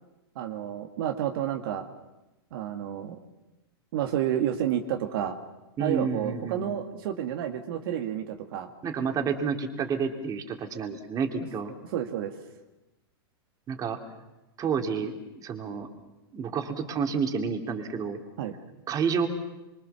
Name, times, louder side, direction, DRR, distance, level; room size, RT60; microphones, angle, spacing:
voice 1, 0.4-1.9 2.5-3.2 3.9-5.4 5.8-8.7 11.9-12.3 18.4-18.6, right 10 dB, 65° right, 5 dB, 2.0 m, -30 dB
voice 2, 5.8-6.8 8.8-11.7 13.7-14.0 14.6-15.9 16.3-18.2 18.9-19.3, right 6 dB, 25° right, 4 dB, 3.3 m, -29 dB
26.5 x 23.5 x 7.2 m, 1.0 s
hypercardioid pair, 120°, 13 cm